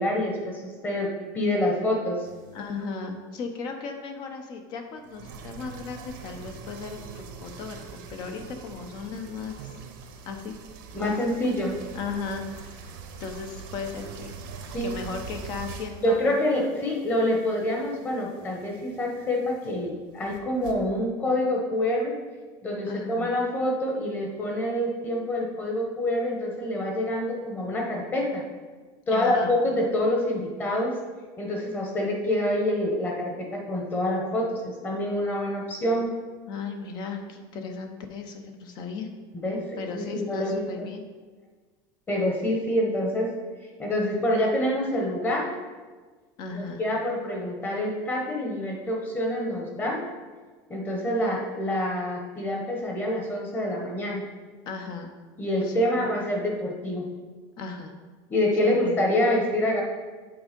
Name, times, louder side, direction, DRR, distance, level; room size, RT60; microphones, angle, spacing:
voice 1, 0.0-2.3 10.9-11.8 14.7-14.9 16.0-22.2 22.6-28.4 29.1-31.0 31.4-36.1 39.3-39.6 39.9-40.6 42.1-43.3 43.8-45.5 46.5-50.0 50.7-54.2 55.4-57.0 58.3-59.8, left 1 dB, 15° left, -1 dB, 1.2 m, -26 dB
sound 1, 2.2-2.8 5.0-20.7, right 5 dB, 85° right, 1.0 m, -43 dB
voice 2, 2.5-9.7 10.2-10.6 11.0-11.2 11.9-16.3 22.8-23.3 29.1-29.6 36.5-39.1 39.8-41.0 46.4-46.8 54.7-55.1 55.6-56.1 57.6-57.9 58.6-59.0, left 4 dB, 40° left, 5 dB, 0.7 m, -36 dB
7.9 x 3.6 x 5.2 m, 1.4 s
cardioid pair, 160°, 11 cm